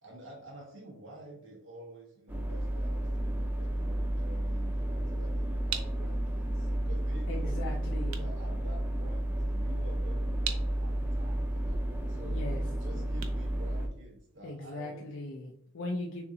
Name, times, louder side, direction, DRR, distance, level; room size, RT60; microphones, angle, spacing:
voice 1, 0.0-7.7 8.2-12.5 12.8-15.1, right 1 dB, 70° right, -1 dB, 1.4 m, -49 dB
sound 1, 2.3-13.9, right 1 dB, 10° right, 0.5 m, -32 dB
sound 2, 5.7-14.5, right 9 dB, 85° right, 0.6 m, -44 dB
voice 2, 7.3-8.2 12.2-12.6 14.4-16.2, left 2 dB, 70° left, 0 dB, 0.5 m, -39 dB
6.6 x 2.5 x 2.8 m, 0.69 s
head